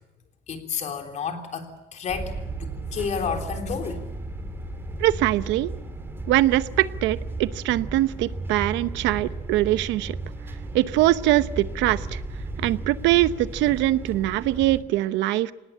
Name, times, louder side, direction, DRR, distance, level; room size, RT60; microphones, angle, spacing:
voice 1, 0.5-2.3 2.6-4.0 12.6-12.7, left 6 dB, 40° left, 5 dB, 3.5 m, -31 dB
sound 1, 2.1-14.8, right 2 dB, 10° right, 2.7 m, -35 dB
voice 2, 5.0-5.7 6.3-10.1 10.7-12.2 12.6-15.5, right 15 dB, 75° right, 14 dB, 1.0 m, -22 dB
25.5 x 19.5 x 8.6 m, 1.0 s
cardioid pair, 160°, 19 cm